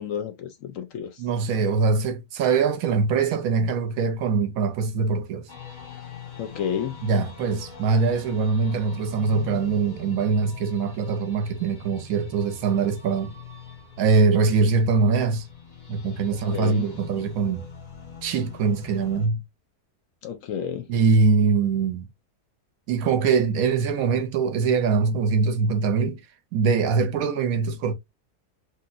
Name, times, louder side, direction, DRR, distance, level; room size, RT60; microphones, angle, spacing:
voice 1, 0.0-1.2 6.4-7.0 16.5-16.9 20.2-20.9, left 8 dB, 70° left, 0.8 m, -30 dB
voice 2, 1.2-5.5 7.0-13.3 14.0-15.5 15.9-17.6 18.2-19.4 20.9-22.1 22.9-26.2 26.5-27.9, right 5 dB, 70° right, 1.0 m, -23 dB
sound 1, 5.5-19.3, left 7 dB, 40° left, 0.8 m, -42 dB
3.2 x 2.6 x 2.4 m
omnidirectional pair, 1.7 m